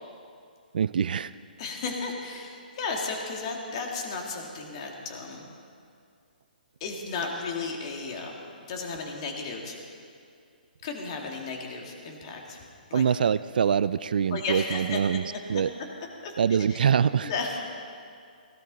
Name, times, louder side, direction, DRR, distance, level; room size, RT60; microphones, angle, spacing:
voice 1, 0.7-1.3 12.9-15.2 15.5-15.7 16.4-17.3, right 7 dB, 65° right, 15 dB, 0.4 m, -24 dB
voice 2, 1.6-5.5 6.8-8.3 8.7-9.8 10.8-12.6 12.9-13.0 14.3-15.0 15.5-15.6 16.2-16.3 16.7-16.8 17.2-17.6, left 4 dB, 35° left, 1 dB, 2.2 m, -34 dB
18.5 x 17.0 x 4.0 m, 2.3 s
hypercardioid pair, 160°, 5 cm